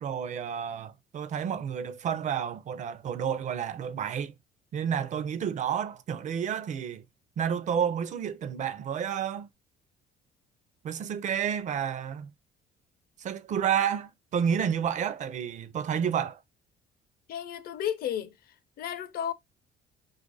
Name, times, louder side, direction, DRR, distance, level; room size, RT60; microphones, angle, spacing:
voice 1, 0.0-4.3 4.7-7.0 7.4-9.5 10.8-12.3 13.2-16.4, right 8 dB, 45° right, 0.5 m, -30 dB
voice 2, 17.3-18.3 18.8-19.3, left 9 dB, 65° left, 0.6 m, -32 dB
2.8 x 2.5 x 3.8 m
cardioid pair, 110°, 17 cm